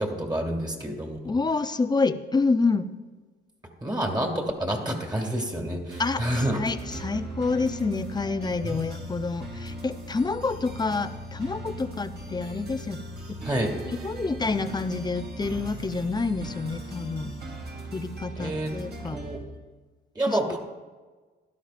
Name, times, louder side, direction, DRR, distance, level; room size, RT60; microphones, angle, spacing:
voice 1, 0.0-1.4 3.8-6.6 8.6-8.8 13.4-13.7 18.4-18.7 19.1-19.4 20.1-20.6, right 1 dB, 20° right, 2 dB, 2.3 m, -28 dB
voice 2, 1.2-2.9 6.0-13.0 13.9-17.3 17.9-19.2 20.3-20.4, left 4 dB, 20° left, 11 dB, 0.6 m, -28 dB
sound 1, 5.9-19.4, right 1 dB, 55° right, 2.6 m, -38 dB
17.0 x 11.5 x 2.5 m, 1.3 s
cardioid pair, 90°, 20 cm